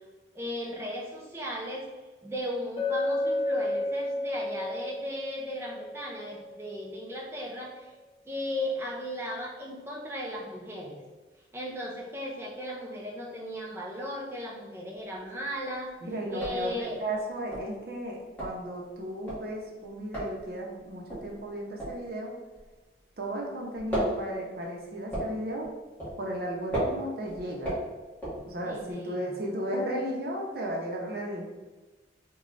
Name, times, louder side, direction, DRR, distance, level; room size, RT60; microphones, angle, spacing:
voice 1, 0.3-1.9 2.2-7.9 8.3-11.0 11.5-15.9 16.3-17.0 28.6-29.4, equal, 15° right, -2 dB, 0.5 m, -36 dB
Chink clink, 2.8-6.8, left 1 dB, 30° left, 0.9 m, -31 dB
sound 1, 15.0-15.6 15.9-16.0 16.2-23.3 23.6-28.9, right 1 dB, 10° left, 1.2 m, -35 dB
voice 2, 16.0-22.3 23.2-25.7 26.2-27.8 28.5-31.4, right 1 dB, 55° right, -1 dB, 0.7 m, -35 dB
3.1 x 2.3 x 3.9 m, 1.2 s
head